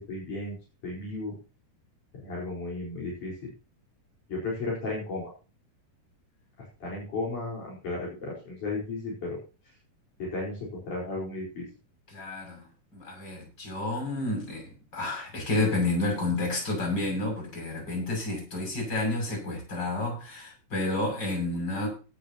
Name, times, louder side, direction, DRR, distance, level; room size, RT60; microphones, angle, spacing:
voice 1, 0.1-0.6 0.8-1.3 2.2-3.5 4.3-5.3 6.8-9.4 10.2-11.6, left 2 dB, 60° left, -4 dB, 5.9 m, -34 dB
voice 2, 12.1-12.6 12.9-14.6 14.9-21.9, left 2 dB, 30° left, 1 dB, 7.4 m, -30 dB
17.5 x 10.5 x 2.9 m, 0.33 s
omnidirectional pair, 4.1 m